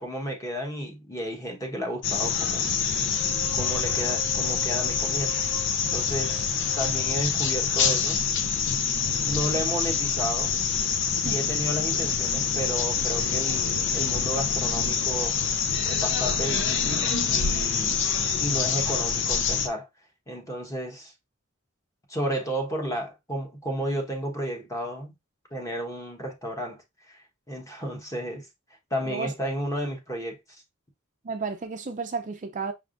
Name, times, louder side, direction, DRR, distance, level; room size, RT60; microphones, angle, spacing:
voice 1, 0.0-3.0 3.5-5.3 5.9-8.2 9.2-10.6 11.1-15.4 15.8-18.1 18.4-19.9 20.3-21.1 22.1-25.1 25.5-28.5 28.9-30.6, equal, 15° left, 1.2 m, -32 dB
sound 1, 2.0-19.7, left 6 dB, 60° left, 0.7 m, -26 dB
sound 2, 3.1-9.2, left 2 dB, 90° left, 2.4 m, -45 dB
voice 2, 31.2-32.7, right 4 dB, 35° right, 0.5 m, -32 dB
5.7 x 3.5 x 2.5 m
head